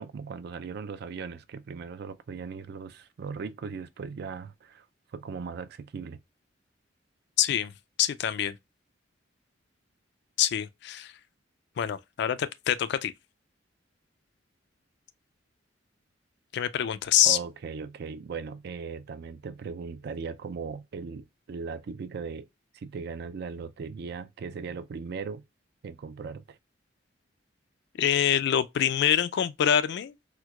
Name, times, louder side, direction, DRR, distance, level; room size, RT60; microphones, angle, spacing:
voice 1, 0.0-4.9 5.1-6.2 17.2-22.5 22.7-25.4 25.8-26.6, right 5 dB, 60° right, 0.4 m, -38 dB
voice 2, 7.4-7.7 8.0-8.6 10.4-11.1 11.8-13.1 16.5-17.4 28.0-30.1, left 10 dB, 65° left, 0.3 m, -25 dB
4.4 x 2.1 x 2.3 m
head